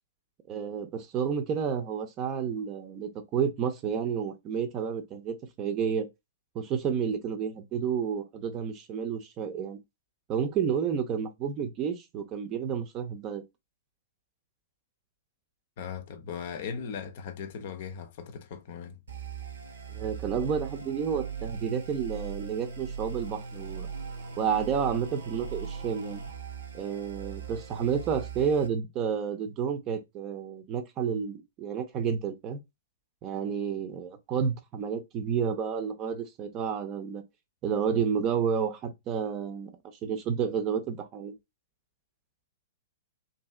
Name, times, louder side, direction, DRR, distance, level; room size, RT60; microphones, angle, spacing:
voice 1, 0.5-6.1 6.5-9.8 10.3-13.4 19.9-23.9 24.4-26.2 26.7-32.6 33.2-37.2 37.6-39.8 40.0-41.3, right 7 dB, 30° right, 0.6 m, -30 dB
voice 2, 15.8-19.0, left 7 dB, 50° left, 0.6 m, -38 dB
sound 1, 19.1-28.7, right 6 dB, 70° right, 0.8 m, -39 dB
2.7 x 2.7 x 2.3 m
figure-of-eight pair, 110°, 0 cm